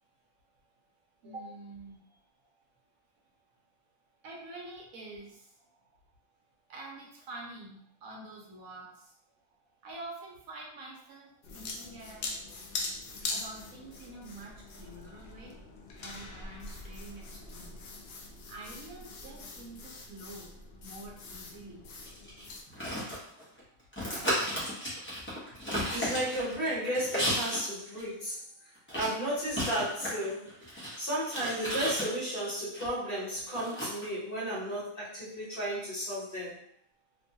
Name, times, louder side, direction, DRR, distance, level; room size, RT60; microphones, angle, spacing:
voice 1, 1.2-2.0 4.2-5.5 6.7-9.1 9.8-12.4 13.3-15.6 16.0-17.8 18.5-20.5 20.8-21.9, right 2 dB, 75° right, -2 dB, 1.1 m, -47 dB
sound 1, 11.4-22.6, left 3 dB, 65° left, 0.6 m, -42 dB
sound 2, 22.0-23.6 23.9-27.7 27.9-28.0 28.9-32.8 33.5-34.1, equal, 10° left, 0.6 m, -34 dB
voice 2, 25.9-28.4 28.9-30.5 31.0-36.6, right 1 dB, 40° left, -8 dB, 1.2 m, -33 dB
2.9 x 2.2 x 2.7 m, 0.70 s
omnidirectional pair, 1.5 m